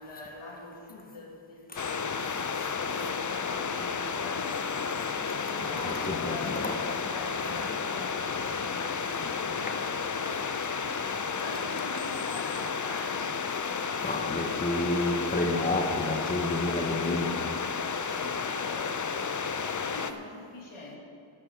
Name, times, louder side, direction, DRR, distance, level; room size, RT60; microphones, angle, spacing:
voice 1, 0.0-2.2 2.8-4.6 5.4-10.6 11.4-13.3 18.3-21.0, left 2 dB, 85° left, 2.7 m, -44 dB
sound 1, 1.8-20.1, left 5 dB, 40° left, 0.7 m, -32 dB
voice 2, 5.2-6.8 8.4-8.5 9.6-10.0 14.0-17.6 18.0-18.3, left 2 dB, 20° left, 1.3 m, -31 dB
13.5 x 10.5 x 5.0 m
wide cardioid pair, 70°, 48 cm